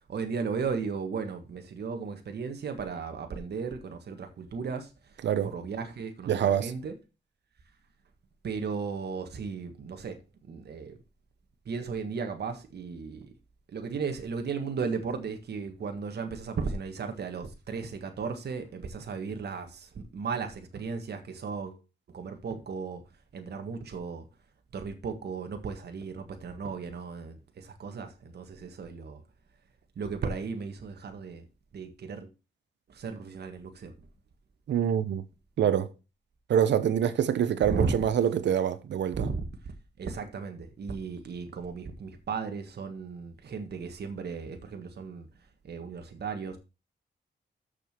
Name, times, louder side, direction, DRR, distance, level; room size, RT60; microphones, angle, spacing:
voice 1, 0.1-6.9 8.4-11.0 11.6-13.3 13.7-21.8 22.1-23.0 23.3-24.3 24.7-29.2 29.9-31.5 31.7-32.3 32.9-33.9 37.6-38.1 39.1-45.3 45.6-46.6, right 5 dB, 70° right, 1.6 m, -35 dB
voice 2, 6.3-6.7 34.7-35.2 35.6-35.9 36.5-39.3, right 9 dB, 85° right, 0.9 m, -25 dB
7.0 x 6.6 x 5.9 m
cardioid pair, 80°, 18 cm